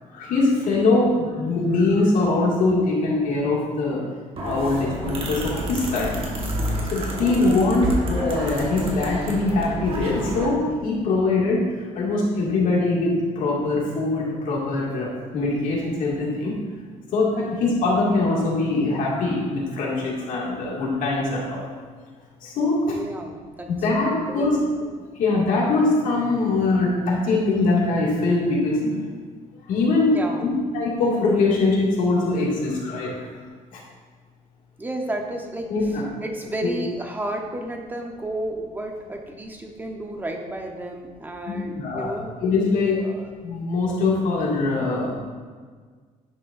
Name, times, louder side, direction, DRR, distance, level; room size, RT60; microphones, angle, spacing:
voice 1, 0.1-4.0 4.4-6.1 6.9-11.6 12.0-16.6 17.1-21.7 22.4-23.0 23.7-24.6 25.1-29.0 29.7-33.3 33.7-33.8 35.7-36.1 36.6-36.7 41.5-43.1 43.4-45.2, left 3 dB, 80° left, -3 dB, 2.1 m, -22 dB
sound 1, 4.4-10.5, right 1 dB, 40° right, 1.4 m, -29 dB
voice 2, 22.9-23.7 24.3-24.7 29.9-30.7 34.8-42.3 42.9-43.3, right 1 dB, 15° right, 2 dB, 0.9 m, -32 dB
10.5 x 6.3 x 2.6 m, 1.6 s
cardioid pair, 145°, 14 cm